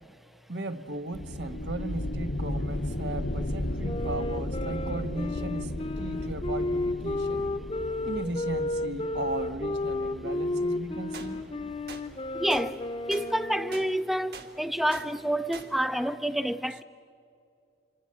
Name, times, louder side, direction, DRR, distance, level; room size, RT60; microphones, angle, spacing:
voice 1, 0.5-7.6 8.0-11.4, right 2 dB, 80° right, 1.4 m, -36 dB
sound 1, 1.1-12.6, left 1 dB, 75° left, 1.1 m, -35 dB
Wind instrument woodwind instrument, 3.8-13.9, left 2 dB, 30° left, 0.9 m, -32 dB
sound 2, 11.1-11.3 11.9-12.0 12.5-12.7 13.1-13.3 13.7-13.9 14.3-14.5 14.9-15.1 15.5-15.7, right 4 dB, 60° right, 2.4 m, -42 dB
voice 2, 12.4-12.7 13.1-16.8, equal, ahead, 0.5 m, -28 dB
26.5 x 25.0 x 7.7 m
head